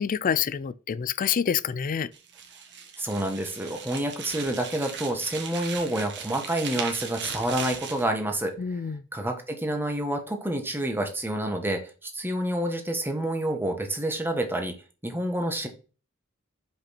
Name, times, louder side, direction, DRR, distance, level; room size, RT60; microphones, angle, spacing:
voice 1, 0.0-2.1 8.6-9.0, left 7 dB, 40° left, 0.4 m, -27 dB
sound 1, 2.1-8.1, right 6 dB, 55° right, 1.5 m, -38 dB
voice 2, 3.0-8.6 9.1-14.8 15.0-15.7, right 1 dB, 10° right, 1.3 m, -28 dB
5.9 x 5.2 x 4.2 m
head